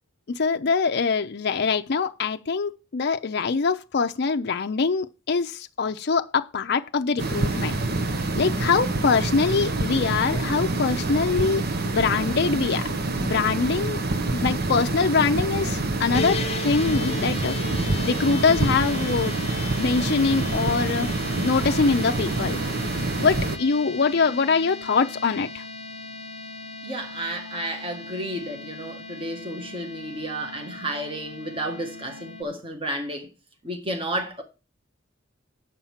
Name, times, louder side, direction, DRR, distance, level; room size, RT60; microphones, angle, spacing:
voice 1, 0.3-7.7 8.4-12.9 13.2-14.0 14.3-19.4 19.8-21.1 21.4-22.6 23.2-25.6, left 4 dB, 55° left, 0.5 m, -23 dB
sound 1, 7.2-23.6, right 2 dB, 55° right, 0.9 m, -27 dB
sound 2, 16.1-32.4, left 4 dB, 35° left, 0.9 m, -37 dB
voice 2, 26.8-33.3 33.6-34.4, right 1 dB, 30° right, 1.7 m, -32 dB
8.2 x 5.7 x 7.2 m
head